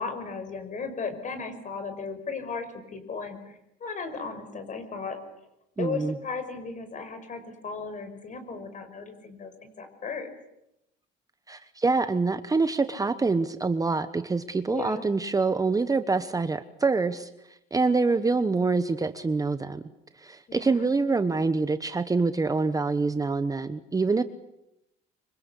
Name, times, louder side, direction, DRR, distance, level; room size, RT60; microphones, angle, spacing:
voice 1, 0.0-5.2 5.8-10.3 14.7-15.1 20.5-20.9, left 4 dB, 40° left, 9 dB, 5.7 m, -36 dB
voice 2, 5.8-6.1 11.5-17.3 17.7-19.8 20.2-24.2, right 4 dB, 20° right, 11 dB, 1.1 m, -25 dB
25.5 x 24.5 x 8.4 m, 0.86 s
cardioid pair, 110°, 20 cm